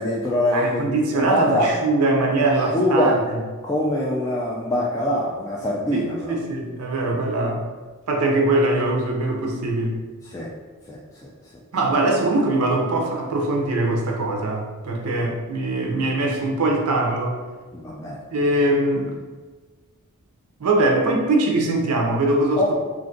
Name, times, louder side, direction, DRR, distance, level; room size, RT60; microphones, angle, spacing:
voice 1, 0.0-1.7 2.4-3.2 3.6-6.4 7.1-7.2 10.2-10.5 10.9-11.3 15.0-15.3 17.7-18.2 22.6-22.7, left 1 dB, 15° left, -5 dB, 0.3 m, -24 dB
voice 2, 0.5-3.1 5.9-7.7 8.1-10.0 11.7-17.4 18.3-19.1 20.6-22.6, right 2 dB, 80° right, 1 dB, 0.5 m, -22 dB
2.5 x 2.4 x 3.7 m, 1.4 s
head